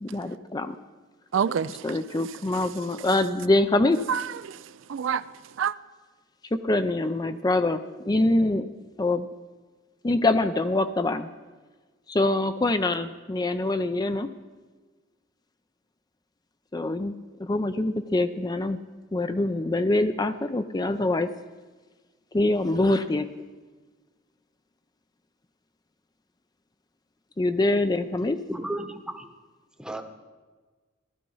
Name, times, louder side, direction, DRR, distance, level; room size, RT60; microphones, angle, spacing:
voice 1, 0.0-0.8 1.8-4.0 6.5-8.7 9.0-9.3 10.0-11.3 12.1-14.3 16.7-17.1 17.4-18.8 19.1-21.3 22.3-23.3 27.4-28.4, left 2 dB, 20° left, 0.5 m, -24 dB
voice 2, 1.3-2.0 4.1-5.3 5.6-5.7, right 7 dB, 70° right, 0.4 m, -28 dB
voice 3, 28.5-29.3 29.8-30.0, right 1 dB, 5° right, 1.0 m, -33 dB
15.0 x 12.5 x 5.5 m
head